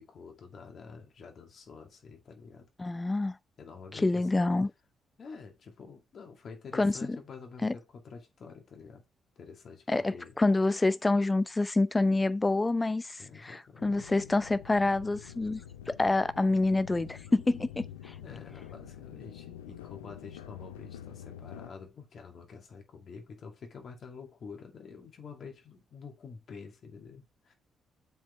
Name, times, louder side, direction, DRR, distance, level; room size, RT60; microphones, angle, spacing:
voice 1, 0.0-2.7 3.6-4.4 5.2-9.0 9.4-10.4 13.2-14.0 18.2-27.5, left 5 dB, 55° left, 2.2 m, -48 dB
voice 2, 2.8-3.4 3.9-4.7 6.7-7.2 7.6-7.7 9.9-15.6 15.9-17.7 18.1-18.2, left 2 dB, 25° left, 0.7 m, -27 dB
sound 1, 13.8-21.7, left 10 dB, 85° left, 0.5 m, -47 dB
7.3 x 5.6 x 3.2 m
hypercardioid pair, 45°, 0 cm